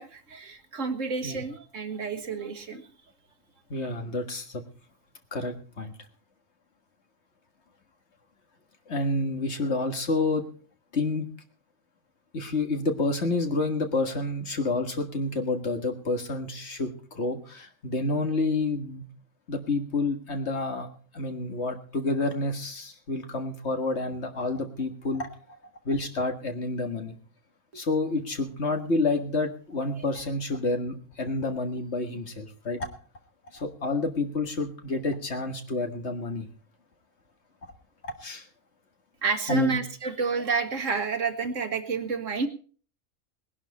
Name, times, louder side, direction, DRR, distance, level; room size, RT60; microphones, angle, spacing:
voice 1, 0.0-2.8 27.7-27.8 39.2-42.5, right 5 dB, 65° right, 8 dB, 1.8 m, -30 dB
voice 2, 3.7-4.6 5.3-5.9 8.9-10.4 10.9-11.3 12.3-19.0 19.5-20.9 21.1-25.3 25.9-27.2 27.7-32.9 33.5-36.5 38.0-38.4 39.5-39.8, left 2 dB, 55° left, 6 dB, 2.0 m, -29 dB
19.5 x 11.0 x 4.1 m, 0.42 s
omnidirectional pair, 1.4 m